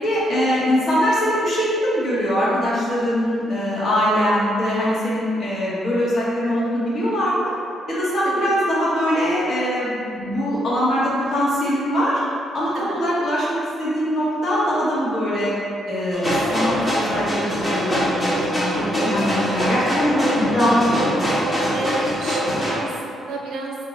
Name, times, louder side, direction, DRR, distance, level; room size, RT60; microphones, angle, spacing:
voice 1, 0.0-7.5 7.9-12.2 12.5-15.5 15.9-21.2, equal, 55° left, -9 dB, 1.3 m, -22 dB
sound 1, 16.1-22.7, equal, 20° left, 0.8 m, -23 dB
voice 2, 21.7-23.8, right 3 dB, 80° right, -1 dB, 0.5 m, -31 dB
3.1 x 2.8 x 3.8 m, 2.5 s
cardioid pair, 90°, 0 cm